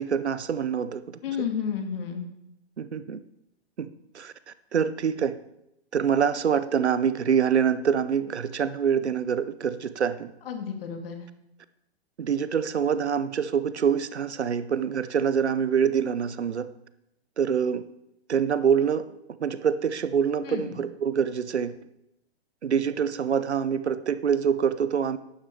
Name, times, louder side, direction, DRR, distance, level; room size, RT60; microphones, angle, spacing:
voice 1, 0.0-1.2 2.8-3.2 3.8-3.9 4.1-5.4 5.9-10.3 12.2-16.7 17.4-17.8 18.3-19.1 19.4-21.7 22.6-25.2, right 7 dB, 90° right, 14 dB, 0.8 m, -25 dB
voice 2, 1.2-2.3 10.5-11.2 20.4-20.7, left 7 dB, 60° left, 4 dB, 2.2 m, -31 dB
11.5 x 10.5 x 3.4 m, 0.82 s
hypercardioid pair, 120°, 33 cm